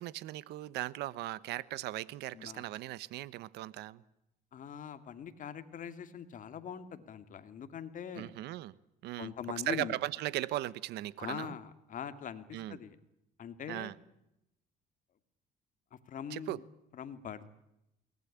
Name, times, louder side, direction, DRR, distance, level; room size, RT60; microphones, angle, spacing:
voice 1, 0.0-4.0 8.2-8.7 9.0-9.3 9.7-11.5 12.5-12.8 13.7-13.9 16.3-16.6, right 16 dB, 80° right, 19 dB, 1.1 m, -38 dB
voice 2, 2.3-2.6 4.5-8.3 9.2-9.9 11.2-13.0 13.4-13.9 15.9-16.6 16.9-17.5, left 8 dB, 50° left, 10 dB, 2.4 m, -43 dB
22.5 x 19.0 x 10.0 m, 0.83 s
cardioid pair, 110°, 17 cm